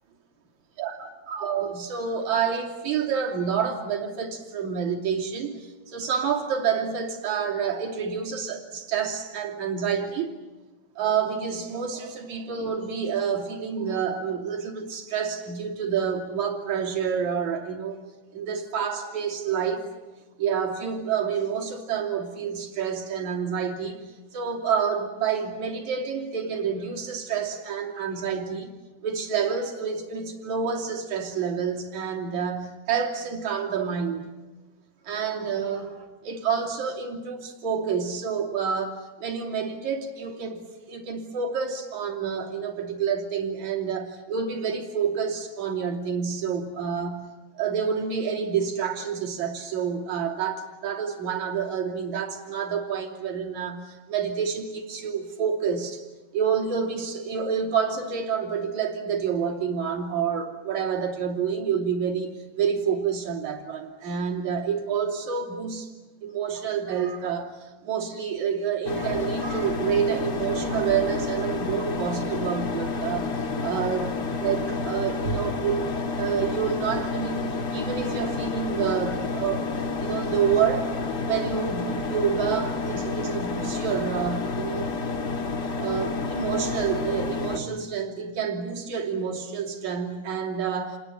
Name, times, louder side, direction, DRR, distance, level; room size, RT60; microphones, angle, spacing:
voice 1, 0.8-10.3 11.0-18.0 18.3-19.9 20.4-24.0 24.3-28.7 29.0-34.3 35.0-47.3 47.5-56.0 56.3-65.9 66.2-75.8 76.2-79.7 80.0-85.0 85.8-91.0, right 7 dB, 50° right, 3.8 m, -28 dB
sound 1, 68.8-87.6, left 4 dB, 45° left, 1.4 m, -30 dB
28.5 x 21.0 x 8.6 m
omnidirectional pair, 4.5 m